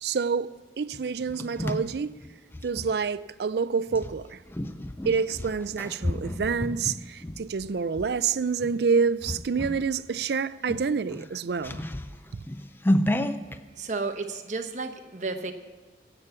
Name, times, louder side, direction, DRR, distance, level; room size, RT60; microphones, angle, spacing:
voice 1, 0.0-0.5 0.8-2.1 2.6-4.4 5.0-11.8, right 5 dB, 65° right, 0.4 m, -27 dB
sound 1, 0.9-2.9 3.9-8.1 8.6-8.8 9.2-9.9 10.2-10.3 10.6-13.6, left 1 dB, 10° left, 0.4 m, -31 dB
voice 2, 13.8-15.5, right 3 dB, 40° right, 1.0 m, -32 dB
16.5 x 7.0 x 8.2 m
head